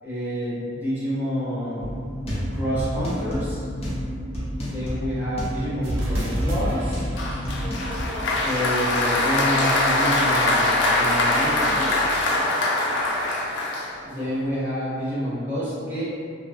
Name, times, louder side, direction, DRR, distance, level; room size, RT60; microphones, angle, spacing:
voice 1, 0.0-2.0 2.5-3.7 4.6-7.1 8.4-12.2 14.0-16.0, equal, 10° right, -10 dB, 0.7 m, -28 dB
sound 1, 1.8-8.0, equal, 35° left, 0.6 m, -30 dB
sound 2, 5.8-12.5, equal, 85° right, 0.5 m, -33 dB
Applause, 7.2-14.3, left 2 dB, 75° left, 0.4 m, -23 dB
2.6 x 2.2 x 2.5 m, 2.2 s
head